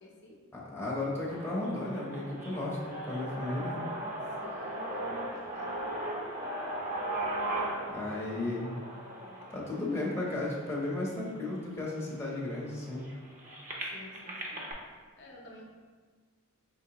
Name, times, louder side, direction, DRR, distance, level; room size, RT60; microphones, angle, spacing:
voice 1, 0.0-0.4 4.4-5.9 13.8-14.7 15.2-15.6, left 1 dB, 55° left, -2 dB, 0.6 m, -52 dB
voice 2, 0.5-3.8 7.9-8.7 9.5-13.0, left 2 dB, 10° left, -5 dB, 0.7 m, -34 dB
sound 1, 1.3-11.2 11.9-12.0 12.3-14.7, right 1 dB, 35° right, 0.6 m, -38 dB
4.4 x 3.1 x 2.9 m, 1.5 s
head